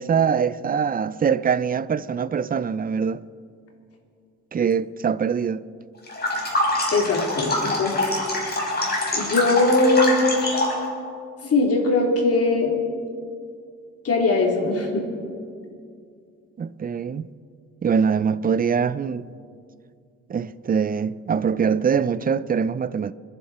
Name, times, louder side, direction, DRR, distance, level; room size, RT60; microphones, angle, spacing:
voice 1, 0.0-3.2 4.5-5.6 16.6-17.3 17.8-19.3 20.3-23.1, right 6 dB, 30° right, 0.5 m, -23 dB
sound 1, 6.1-10.8, left 1 dB, 35° left, 4.9 m, -25 dB
voice 2, 6.9-8.1 9.1-10.3 11.4-12.7 14.0-15.1, left 3 dB, 50° left, 3.6 m, -20 dB
29.5 x 10.5 x 4.3 m
cardioid pair, 90°, 30 cm